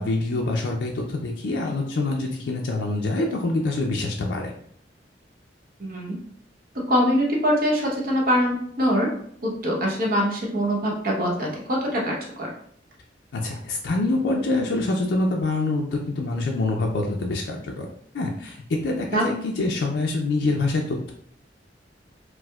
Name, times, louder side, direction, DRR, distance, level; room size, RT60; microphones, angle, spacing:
voice 1, 0.0-4.5 13.3-17.9 18.1-21.1, left 2 dB, 75° left, 0 dB, 0.4 m, -25 dB
voice 2, 5.8-6.2 6.9-9.1 9.4-12.5 19.1-19.3, equal, 55° right, -2 dB, 0.9 m, -23 dB
4.5 x 2.0 x 2.3 m, 0.66 s
head